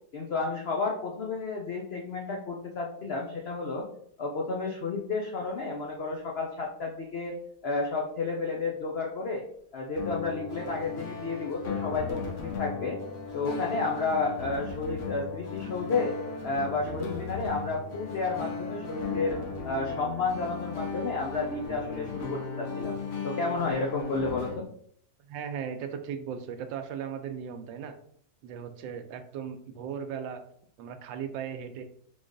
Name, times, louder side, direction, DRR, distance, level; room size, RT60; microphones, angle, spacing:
voice 1, 0.1-3.9 4.2-7.3 7.6-9.4 9.7-13.0 13.3-16.1 16.4-19.4 19.6-23.0 23.2-24.7, left 3 dB, 75° left, 0 dB, 0.5 m, -31 dB
sound 1, 10.0-24.6, left 4 dB, 50° left, 1.0 m, -36 dB
voice 2, 25.3-27.9 28.4-30.4 30.8-31.8, right 7 dB, 90° right, 7 dB, 1.3 m, -37 dB
3.9 x 3.1 x 3.8 m, 0.64 s
omnidirectional pair, 2.0 m